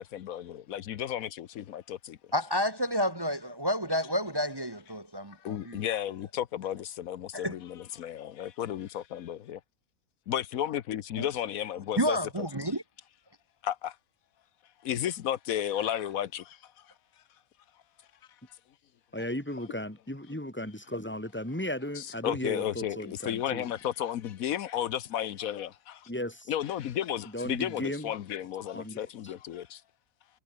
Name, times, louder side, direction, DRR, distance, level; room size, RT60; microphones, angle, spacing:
voice 1, 0.0-2.2 5.4-9.6 10.3-12.5 13.6-14.0 14.8-16.9 22.0-26.1 26.5-29.8, left 11 dB, 85° left, 1.3 m, -33 dB
voice 2, 2.3-5.8 7.4-7.5 11.2-11.3 12.0-12.8, equal, 15° right, 1.5 m, -30 dB
voice 3, 19.1-23.7 26.1-26.5 27.2-28.1 28.7-29.3, left 1 dB, 10° left, 3.3 m, -36 dB
omnidirectional pair, 1.4 m